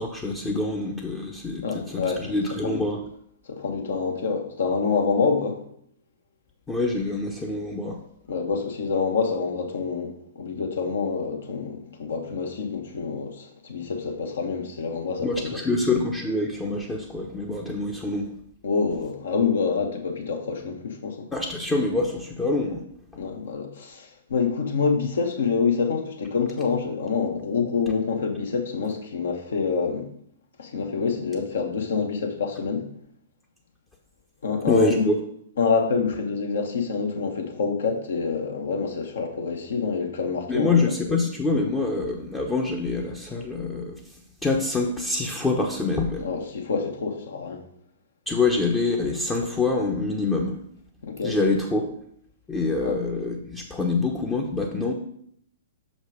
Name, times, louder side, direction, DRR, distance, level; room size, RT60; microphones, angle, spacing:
voice 1, 0.0-1.6 1.9-3.0 6.7-8.0 15.2-18.3 21.3-22.8 34.7-35.2 40.5-44.0 44.4-46.3 48.3-50.6 51.2-51.9 52.5-54.9, left 3 dB, 15° left, -1 dB, 0.9 m, -25 dB
voice 2, 1.6-2.3 2.6-2.8 3.4-5.6 8.3-15.6 18.6-21.3 23.2-30.1 30.6-32.9 34.4-35.1 35.6-40.8 46.2-47.6 51.0-51.4 52.8-53.0, left 5 dB, 65° left, 3 dB, 1.5 m, -26 dB
6.3 x 5.1 x 5.0 m, 0.69 s
figure-of-eight pair, 115°, 0 cm